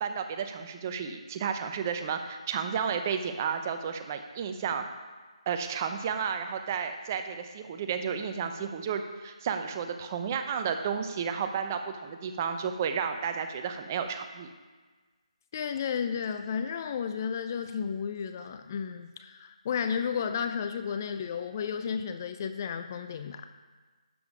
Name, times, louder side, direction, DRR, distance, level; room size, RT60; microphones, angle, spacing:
voice 1, 0.0-4.8 5.5-14.5, right 7 dB, 25° right, 7 dB, 0.7 m, -32 dB
voice 2, 15.5-23.5, left 7 dB, 30° left, 9 dB, 0.4 m, -33 dB
12.0 x 7.1 x 4.8 m, 1.4 s
figure-of-eight pair, 160°, 4 cm